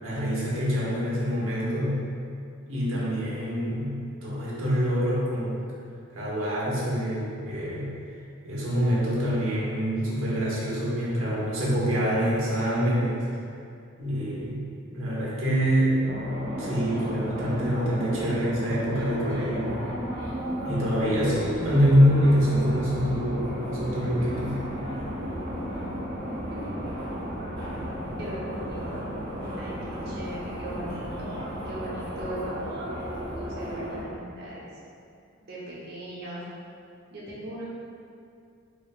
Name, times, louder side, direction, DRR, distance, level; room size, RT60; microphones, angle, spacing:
voice 1, 0.0-2.1 2.7-5.6 6.1-8.0 8.4-13.2 14.0-16.0 16.6-19.7 20.6-24.7, equal, 85° right, -7 dB, 1.0 m, -25 dB
sound 1, 16.0-34.0, equal, 35° right, 1.4 m, -34 dB
voice 2, 26.5-26.9 28.2-29.0 29.6-31.3 31.6-32.6 33.3-34.7 35.4-36.4 37.1-37.7, right 1 dB, 50° right, -7 dB, 0.9 m, -39 dB
3.9 x 3.4 x 2.4 m, 2.4 s
head